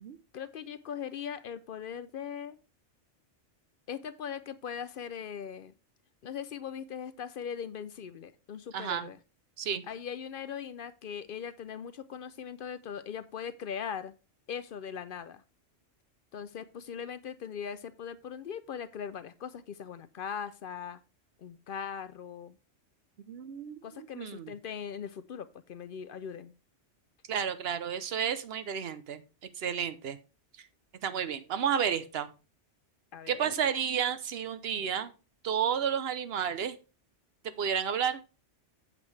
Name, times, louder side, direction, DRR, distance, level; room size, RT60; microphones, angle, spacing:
voice 1, 0.3-2.6 3.9-5.7 6.2-9.2 9.9-14.1 14.5-15.4 16.3-21.0 21.4-22.6 23.8-26.5 33.1-33.5, left 7 dB, 60° left, 14 dB, 0.6 m, -40 dB
voice 2, 8.7-9.1 9.6-9.8 23.3-23.8 24.1-24.5 27.3-29.2 29.6-30.2 30.6-30.7 31.0-32.3 33.3-35.1 35.4-36.8 37.6-38.2, right 8 dB, 60° right, 12 dB, 0.9 m, -31 dB
8.4 x 7.6 x 3.2 m, 0.31 s
omnidirectional pair, 1.2 m